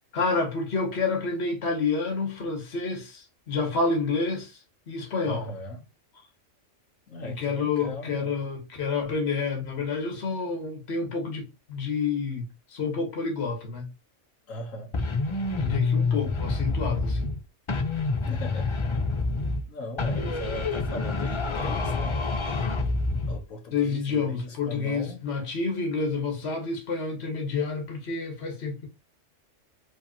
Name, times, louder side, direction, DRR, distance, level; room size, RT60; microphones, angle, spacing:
voice 1, 0.1-4.6 4.9-5.5 7.2-13.9 15.6-17.3 23.7-28.9, left 4 dB, 55° left, 1.6 m, -29 dB
voice 2, 5.2-5.8 7.1-8.3 14.5-14.9 18.3-18.8 19.7-22.2 23.3-25.2, left 1 dB, 90° left, 1.6 m, -38 dB
sound 1, 14.9-17.4 17.7-19.7 20.0-23.4, left 3 dB, 40° left, 0.4 m, -27 dB
4.9 x 3.4 x 2.8 m
omnidirectional pair, 1.3 m